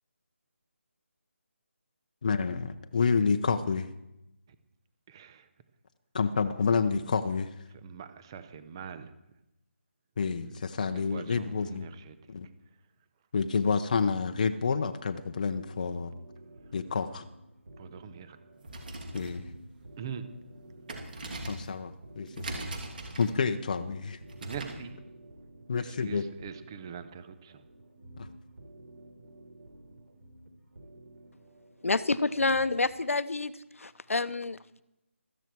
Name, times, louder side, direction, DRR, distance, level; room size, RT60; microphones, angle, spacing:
voice 1, 2.2-3.9 6.1-7.5 10.2-11.9 12.3-12.5 13.3-16.1 16.7-17.2 19.1-19.5 21.5-22.8 23.2-24.2 25.7-26.2 28.2-28.3, left 5 dB, 35° left, 8 dB, 0.7 m, -29 dB
voice 2, 5.1-5.5 7.7-9.1 10.4-12.3 17.8-18.4 20.0-20.3 24.4-25.0 25.8-27.6, right 7 dB, 20° right, 12 dB, 0.7 m, -43 dB
sound 1, 15.5-32.9, right 1 dB, 65° right, 3.6 m, -52 dB
sound 2, 18.5-24.9, right 2 dB, 40° right, 3.0 m, -42 dB
voice 3, 31.8-33.5 33.8-34.8, left 3 dB, 85° left, 15 dB, 0.9 m, -28 dB
16.0 x 14.0 x 4.6 m, 0.89 s
figure-of-eight pair, 170°, 7 cm